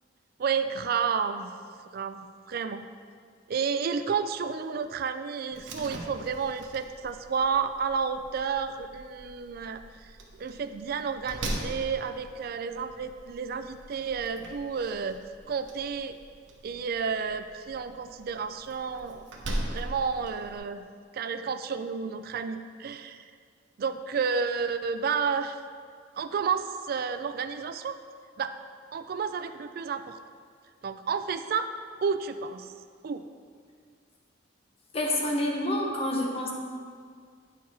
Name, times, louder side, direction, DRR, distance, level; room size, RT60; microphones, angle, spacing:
voice 1, 0.4-1.5 1.9-2.9 3.5-10.1 10.4-15.2 15.5-16.2 16.6-19.2 19.7-20.9 21.1-23.3 23.8-25.6 26.1-28.0 28.4-28.5 28.9-30.2 30.8-31.7 32.0-32.7 33.0-33.3, right 6 dB, 55° right, 10 dB, 0.3 m, -31 dB
Slam, 5.5-20.6, right 1 dB, 90° right, 1.0 m, -41 dB
voice 2, 34.9-36.5, left 1 dB, 30° left, 0 dB, 1.0 m, -28 dB
9.1 x 4.7 x 4.1 m, 2.1 s
head